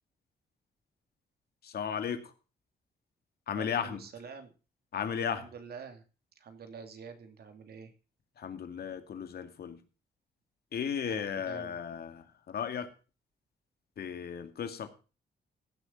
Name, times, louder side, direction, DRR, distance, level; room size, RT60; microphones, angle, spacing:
voice 1, 1.6-2.3 3.5-4.0 4.9-5.4 8.4-9.8 10.7-12.9 14.0-14.9, left 7 dB, 65° left, 2.2 m, -35 dB
voice 2, 3.5-4.5 5.4-6.0 6.4-7.9 11.0-11.8, right 6 dB, 65° right, 2.7 m, -47 dB
16.0 x 6.8 x 5.7 m
cardioid pair, 85°, 17 cm